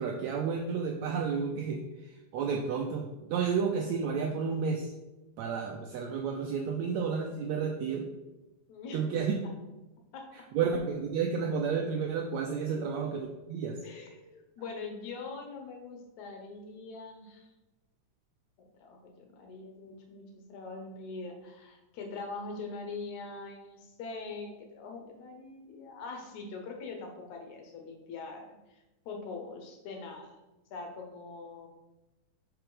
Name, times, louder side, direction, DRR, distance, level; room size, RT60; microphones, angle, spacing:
voice 1, 0.0-4.9 5.4-8.1 8.9-9.3 10.3-13.8, right 6 dB, 85° right, 2 dB, 1.6 m, -31 dB
voice 2, 8.7-9.0 10.1-10.3 12.7-12.8 13.8-17.5 18.8-30.4 30.7-31.7, left 4 dB, 75° left, 3 dB, 2.1 m, -43 dB
5.0 x 4.6 x 4.8 m, 1.0 s
omnidirectional pair, 3.7 m